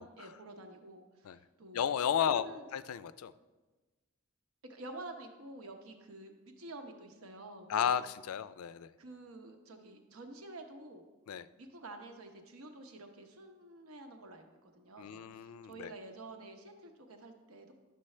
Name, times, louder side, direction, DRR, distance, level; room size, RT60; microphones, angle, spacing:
voice 1, 0.0-1.8 2.3-2.6 4.6-8.0 9.0-11.1 11.6-17.7, right 2 dB, 80° right, 5 dB, 0.9 m, -49 dB
voice 2, 1.7-2.5 2.7-3.3 7.7-8.9 11.3-11.5 15.0-15.9, left 8 dB, 85° left, 15 dB, 0.4 m, -33 dB
11.5 x 6.8 x 3.3 m, 1.2 s
head